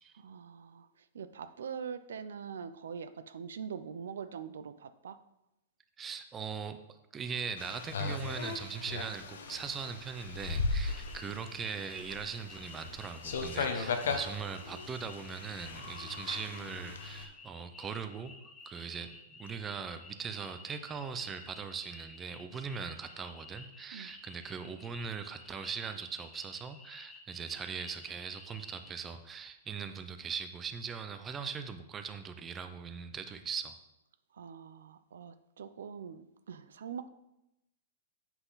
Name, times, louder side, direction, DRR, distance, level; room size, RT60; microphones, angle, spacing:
voice 1, 0.2-0.9 1.1-5.2 23.9-24.1 34.3-37.1, right 7 dB, 85° right, 12 dB, 0.5 m, -43 dB
voice 2, 6.0-6.8 7.1-18.3 18.7-19.1 19.4-33.7, right 6 dB, 15° right, 8 dB, 0.6 m, -40 dB
sound 1, 7.6-17.2, left 4 dB, 80° left, 1.0 m, -38 dB
sound 2, 10.8-28.9, left 3 dB, 15° left, 0.7 m, -53 dB
8.0 x 5.9 x 4.0 m, 0.87 s
hypercardioid pair, 150°, 0 cm